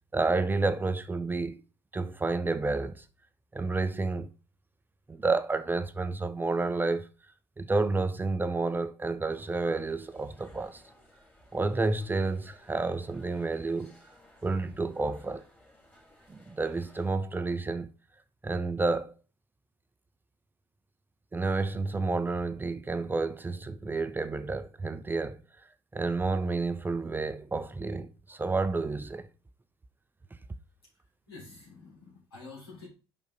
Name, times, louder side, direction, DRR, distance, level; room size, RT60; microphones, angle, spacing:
voice 1, 0.1-1.6 1.9-3.0 3.5-4.3 5.1-7.1 7.6-10.8 11.5-13.9 14.4-15.4 16.3-17.9 18.4-19.1 21.3-25.4 25.9-29.3, right 3 dB, 15° right, 0.6 m, -30 dB
sound 1, 9.3-17.1, left 1 dB, 10° left, 2.8 m, -59 dB
voice 2, 30.8-32.9, left 3 dB, 85° left, 3.2 m, -49 dB
5.4 x 5.2 x 3.8 m
figure-of-eight pair, 60°, 12 cm